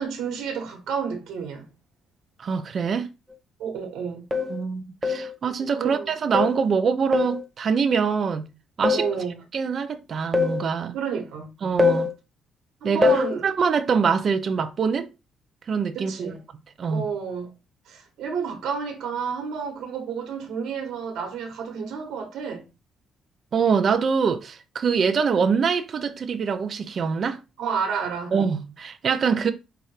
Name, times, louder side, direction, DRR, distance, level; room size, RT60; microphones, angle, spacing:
voice 1, 0.0-1.7 3.6-4.2 5.7-6.1 8.9-9.4 10.9-11.5 12.8-13.5 15.9-16.4 16.9-17.5 17.9-22.7 27.6-28.3, right 6 dB, 75° right, 1.4 m, -30 dB
voice 2, 2.4-3.1 4.5-8.5 8.8-9.0 9.5-11.0 11.6-12.1 12.8-15.1 15.7-16.3 16.8-17.0 23.5-27.4 28.3-29.5, right 6 dB, 50° right, 0.6 m, -24 dB
sound 1, 3.3-3.4 4.3-4.6 5.0-5.3 6.3-6.6 7.1-7.4 8.8-9.1 10.3-10.6 11.8-12.1 13.0-13.3, left 4 dB, 20° right, 0.8 m, -22 dB
5.6 x 2.6 x 3.2 m
cardioid pair, 100°, 0 cm